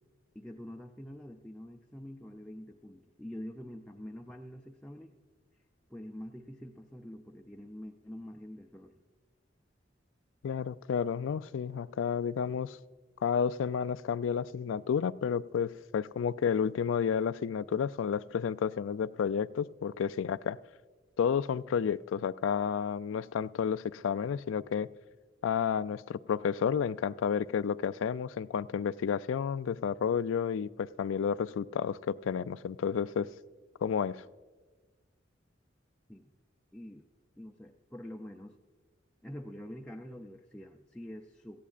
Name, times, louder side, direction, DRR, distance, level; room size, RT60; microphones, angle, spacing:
voice 1, 0.3-5.2 5.9-8.9 36.1-36.3 36.7-37.1 37.4-38.6 39.2-41.7, equal, 5° left, 1 dB, 0.4 m, -46 dB
voice 2, 10.4-12.8 13.2-20.6 21.2-24.9 25.4-33.3 33.8-34.2, left 7 dB, 90° left, 17 dB, 0.3 m, -31 dB
18.5 x 14.5 x 2.4 m, 1.4 s
head